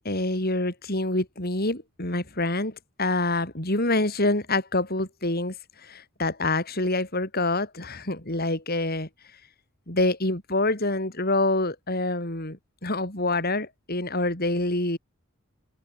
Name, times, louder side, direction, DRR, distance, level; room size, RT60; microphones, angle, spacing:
voice 1, 0.0-5.6 5.8-9.1 9.9-15.0, left 2 dB, 50° left, 6.5 m, -26 dB
open air
head